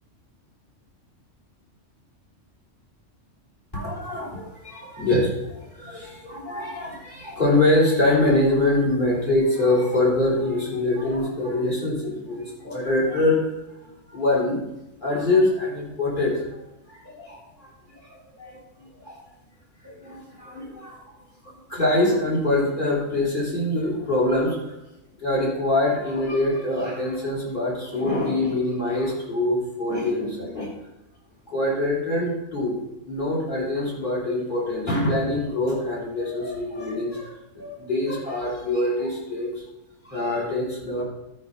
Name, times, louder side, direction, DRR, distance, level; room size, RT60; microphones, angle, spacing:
voice 1, 3.7-13.4 14.1-14.6 15.0-19.2 19.8-21.0 21.4-24.7 25.2-30.7 31.5-32.8 33.1-39.6 40.0-41.0, left 2 dB, 40° left, -4 dB, 3.7 m, -24 dB
12.5 x 5.6 x 5.4 m, 0.93 s
omnidirectional pair, 1.3 m